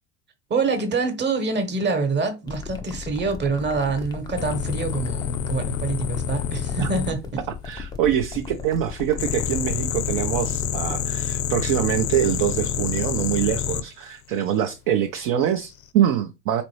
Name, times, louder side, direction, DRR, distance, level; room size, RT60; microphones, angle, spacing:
voice 1, 0.5-7.2, right 4 dB, 25° right, 1.1 m, -25 dB
sound 1, 2.5-11.0, left 6 dB, 10° left, 0.4 m, -36 dB
sound 2, 4.4-7.1 9.2-13.8 15.5-15.8, left 9 dB, 60° left, 0.6 m, -27 dB
voice 2, 7.6-16.6, right 10 dB, 45° right, 0.5 m, -24 dB
4.0 x 2.5 x 3.1 m
figure-of-eight pair, 75°, 44 cm